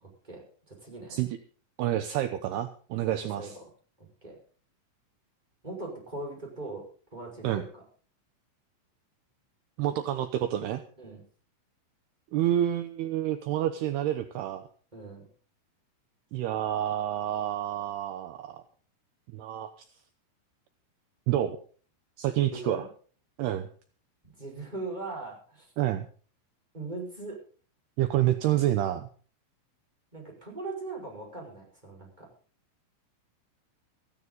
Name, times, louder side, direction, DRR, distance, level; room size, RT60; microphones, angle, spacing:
voice 1, 0.0-1.3 3.4-3.6 4.0-4.4 5.6-7.8 11.0-11.2 14.9-15.3 22.5-22.9 24.2-25.7 26.7-27.4 30.1-32.3, right 3 dB, 10° right, 0 dB, 5.4 m, -40 dB
voice 2, 1.8-3.6 7.4-7.6 9.8-10.8 12.3-14.6 16.3-18.6 19.3-19.7 21.3-21.6 22.2-22.9 23.4-23.7 25.8-26.1 28.0-29.1, right 12 dB, 80° right, 9 dB, 2.4 m, -28 dB
16.5 x 15.0 x 4.0 m, 0.41 s
omnidirectional pair, 5.8 m